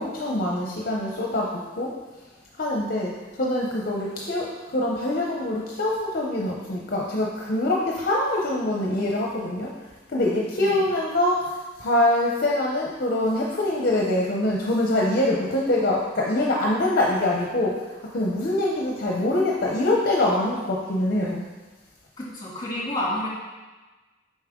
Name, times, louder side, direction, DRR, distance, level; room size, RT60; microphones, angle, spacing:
voice 1, 0.0-2.0 2.5-9.8 10.1-21.5, left 1 dB, 50° left, -2 dB, 0.7 m, -24 dB
voice 2, 22.2-23.3, left 1 dB, 20° left, -6 dB, 2.3 m, -29 dB
7.1 x 5.4 x 3.7 m, 1.2 s
head